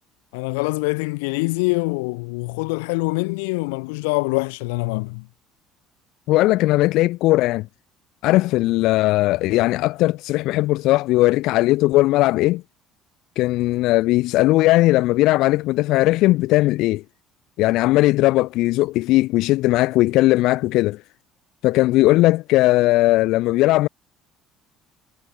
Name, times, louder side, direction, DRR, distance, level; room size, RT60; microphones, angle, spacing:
voice 1, 0.3-5.3, left 29 dB, 90° left, 3.2 m, -24 dB
voice 2, 6.3-7.7 8.2-12.6 13.4-17.0 17.6-21.0 21.6-23.9, left 18 dB, 70° left, 2.1 m, -18 dB
supercardioid pair, 100°, 0 cm